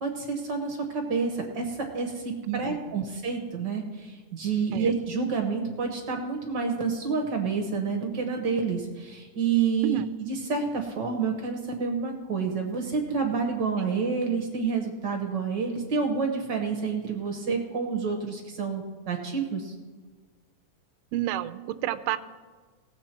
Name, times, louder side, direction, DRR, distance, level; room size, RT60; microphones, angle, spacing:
voice 1, 0.0-19.8, right 5 dB, 60° right, 3 dB, 1.2 m, -29 dB
voice 2, 2.4-3.0 4.7-4.9 9.8-10.0 21.1-22.2, right 13 dB, 80° right, 9 dB, 1.4 m, -30 dB
17.5 x 7.6 x 4.4 m, 1.5 s
omnidirectional pair, 3.4 m